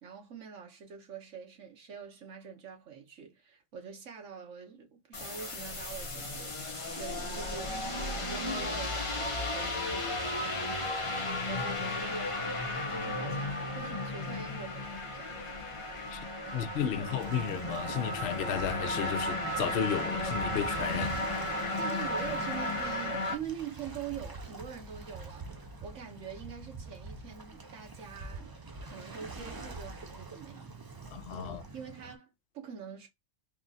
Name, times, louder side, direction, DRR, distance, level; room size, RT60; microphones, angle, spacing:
voice 1, 0.0-6.7 6.9-10.8 11.4-15.6 16.4-17.1 21.7-25.5 25.8-28.5 28.8-30.7 31.4-33.1, right 7 dB, 80° right, 1.4 m, -45 dB
sound 1, 5.1-23.3, left 1 dB, 30° left, 0.8 m, -34 dB
voice 2, 16.5-21.2 31.1-31.6, left 9 dB, 65° left, 0.8 m, -33 dB
Waves surf, 17.2-32.2, right 3 dB, 35° right, 0.3 m, -45 dB
3.6 x 2.4 x 3.9 m
omnidirectional pair, 1.3 m